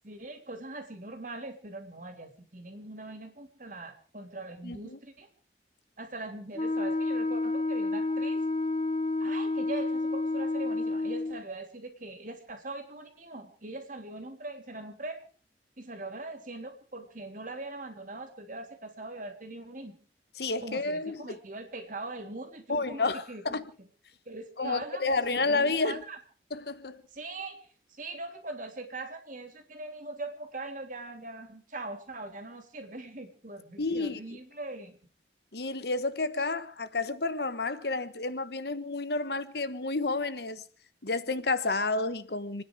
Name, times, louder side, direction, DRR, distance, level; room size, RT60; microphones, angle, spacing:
voice 1, 0.0-5.3 6.0-8.4 9.2-15.2 15.8-20.0 20.6-23.6 24.3-25.0 25.3-26.2 27.1-35.0, right 2 dB, 45° right, 3.0 m, -41 dB
voice 2, 4.6-5.0 20.4-21.4 22.7-23.7 24.6-26.0 26.5-27.0 33.8-34.2 35.5-40.6 41.0-42.6, left 3 dB, 60° left, 1.2 m, -30 dB
Wind instrument woodwind instrument, 6.5-11.4, left 2 dB, 30° left, 0.7 m, -30 dB
29.5 x 10.0 x 4.7 m
head